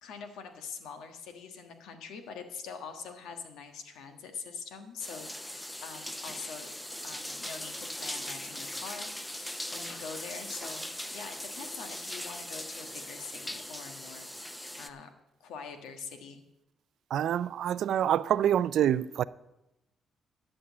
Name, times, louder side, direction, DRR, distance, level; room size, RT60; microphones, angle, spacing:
voice 1, 0.0-6.7 7.0-15.1 15.4-16.4, left 5 dB, 90° left, 1.4 m, -44 dB
sound 1, 5.0-14.9, left 1 dB, 10° left, 0.7 m, -40 dB
voice 2, 17.1-19.2, right 10 dB, 70° right, 0.3 m, -26 dB
11.0 x 6.2 x 8.4 m
cardioid pair, 90°, 0 cm